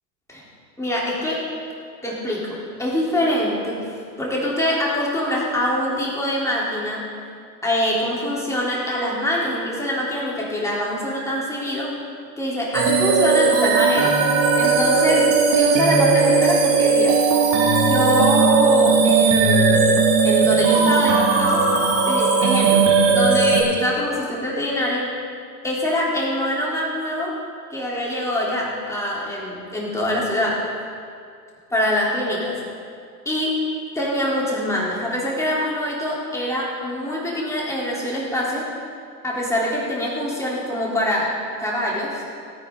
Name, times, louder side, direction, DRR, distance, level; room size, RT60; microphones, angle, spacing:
voice 1, 0.8-1.4 2.0-7.1 7.6-11.9 12.4-14.1 14.6-17.2 17.8-21.6 22.1-25.1 25.6-27.3 27.7-30.6 31.7-32.5 33.3-33.6 34.0-38.6 39.2-41.3 41.6-42.2, left 1 dB, 5° left, -5 dB, 3.6 m, -24 dB
sound 1, 12.7-23.6, right 4 dB, 50° right, 2.8 m, -17 dB
17.5 x 9.7 x 3.9 m, 2.3 s
hypercardioid pair, 105°, 50 cm